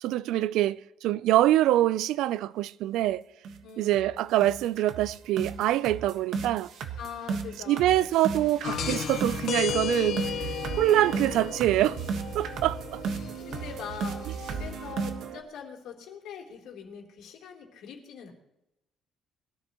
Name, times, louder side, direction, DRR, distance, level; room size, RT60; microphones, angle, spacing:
voice 1, 0.0-3.2 3.8-6.7 7.7-12.0 12.3-13.0, right 14 dB, 85° right, 0.4 m, -25 dB
sound 1, 3.0-3.1 3.4-3.6 3.9-4.1 4.4-15.4, right 5 dB, 60° right, 1.4 m, -35 dB
voice 2, 3.6-4.3 7.0-8.1 13.5-18.3, left 7 dB, 80° left, 3.4 m, -42 dB
sound 2, 8.6-14.9, left 9 dB, 55° left, 0.9 m, -35 dB
21.5 x 13.0 x 3.0 m
cardioid pair, 160°, 0 cm